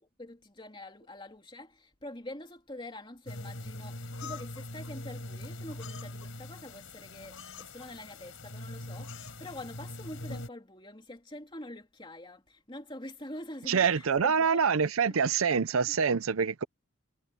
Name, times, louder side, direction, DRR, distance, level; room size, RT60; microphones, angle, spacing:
voice 1, 0.2-14.8, left 1 dB, 25° left, 2.9 m, -45 dB
sound 1, 3.3-10.5, left 2 dB, 70° left, 4.6 m, -42 dB
voice 2, 13.7-16.6, right 6 dB, 80° right, 0.6 m, -26 dB
head